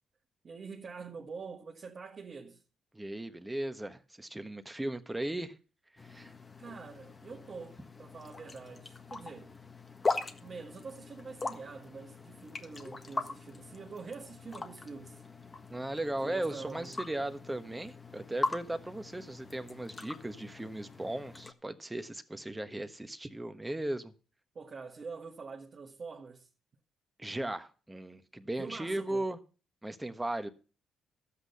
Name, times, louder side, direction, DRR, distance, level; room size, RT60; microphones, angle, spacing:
voice 1, 0.4-2.6 6.6-9.6 10.4-15.2 16.2-17.0 24.5-26.5 28.6-29.3, right 4 dB, 45° right, 1.6 m, -45 dB
voice 2, 2.9-5.5 6.0-6.3 15.7-24.1 27.2-29.4 29.8-30.5, right 1 dB, 10° right, 1.3 m, -37 dB
sound 1, 6.0-21.5, left 3 dB, 30° left, 1.5 m, -41 dB
12.5 x 8.6 x 5.6 m
cardioid pair, 90°, 0 cm